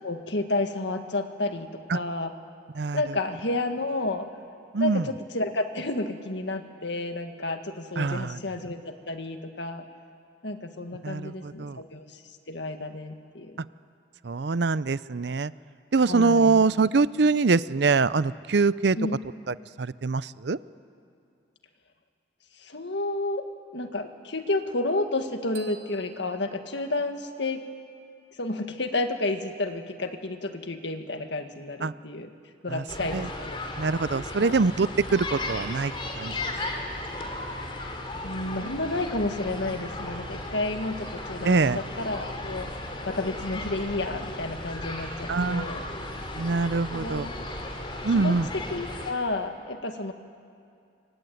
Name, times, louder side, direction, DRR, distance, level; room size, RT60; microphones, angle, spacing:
voice 1, 0.0-2.3 2.9-4.3 4.8-9.9 10.4-12.2 12.5-13.6 16.1-16.6 19.0-19.1 22.6-23.5 23.7-27.6 28.4-32.3 32.6-33.6 34.4-34.5 38.2-45.8 46.9-47.3 48.1-50.1, left 2 dB, 70° left, 6 dB, 1.9 m, -31 dB
voice 2, 4.7-5.1 8.0-8.4 11.0-11.8 13.6-13.7 14.2-15.5 15.9-19.0 19.5-20.6 31.8-31.9 32.7-32.8 33.1-33.3 33.8-36.3 41.4-41.8 45.3-45.6 46.4-47.3 48.0-48.5, right 4 dB, 65° right, 17 dB, 0.6 m, -24 dB
sound 1, 25.5-27.5, right 7 dB, 85° right, 2.0 m, -51 dB
sound 2, 32.9-49.1, left 1 dB, 25° left, 3.0 m, -35 dB
25.0 x 24.5 x 9.4 m, 2.4 s
head